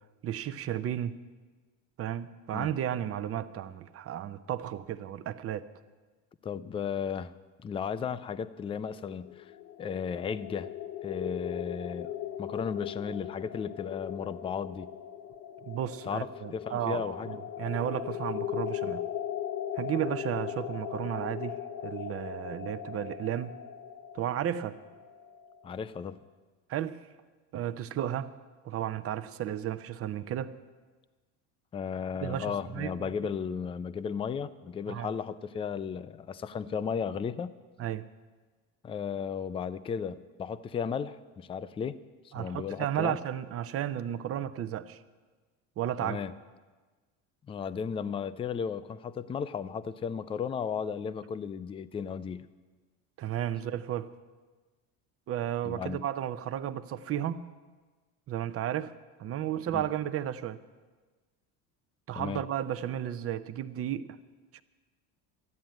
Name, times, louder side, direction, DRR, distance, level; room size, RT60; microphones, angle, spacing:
voice 1, 0.2-1.2 2.0-5.7 15.6-19.0 19.8-23.6 24.1-24.8 26.7-27.0 27.5-28.3 28.6-30.5 32.2-33.1 34.9-35.1 37.8-38.0 42.3-45.0 45.8-46.2 53.2-54.1 55.3-57.4 58.3-58.9 59.2-60.6 62.1-64.1 64.5-64.6, right 11 dB, 40° right, 13 dB, 0.7 m, -33 dB
voice 2, 6.4-7.3 7.6-9.5 9.8-10.7 11.0-12.1 12.4-14.9 16.0-16.3 16.5-17.4 25.6-26.2 31.7-37.5 38.8-42.0 42.2-43.2 46.0-46.3 47.5-52.5 55.6-56.1 59.7-59.8 62.1-62.4, left 7 dB, 15° left, 14 dB, 0.4 m, -35 dB
sound 1, 9.0-25.8, left 10 dB, 60° left, 0.8 m, -39 dB
13.5 x 9.3 x 8.9 m, 1.3 s
supercardioid pair, 120°, 37 cm